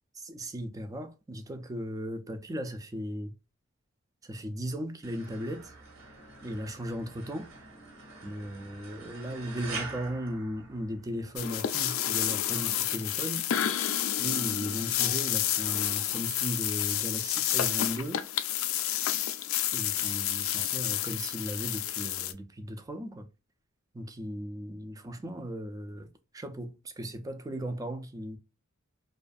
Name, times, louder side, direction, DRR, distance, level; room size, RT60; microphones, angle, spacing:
voice 1, 0.1-3.3 4.2-5.7 6.4-7.5 8.2-13.4 14.2-18.2 19.7-23.3 23.9-28.4, equal, 15° right, 0.3 m, -37 dB
sound 1, 5.0-11.3, right 3 dB, 65° right, 0.8 m, -44 dB
sound 2, 11.4-22.3, left 11 dB, 70° left, 0.3 m, -30 dB
2.4 x 2.2 x 2.4 m
head